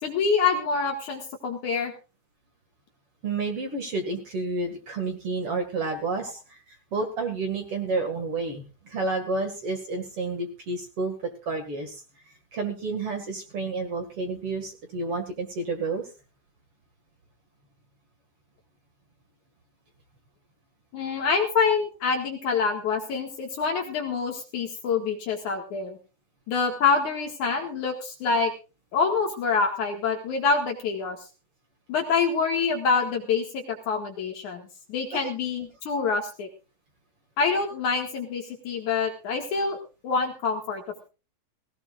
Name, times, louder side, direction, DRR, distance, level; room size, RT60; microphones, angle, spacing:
voice 1, 0.0-1.9 20.9-26.0 26.5-28.5 28.9-31.2 31.9-34.6 34.9-36.5 37.4-39.8 40.0-40.8, left 5 dB, 55° left, 3 dB, 2.6 m, -26 dB
voice 2, 3.2-6.6 6.9-11.1 11.5-12.0 12.5-16.0 35.1-35.3, right 3 dB, 45° right, 4 dB, 2.0 m, -30 dB
19.0 x 17.0 x 2.5 m, 0.32 s
omnidirectional pair, 5.4 m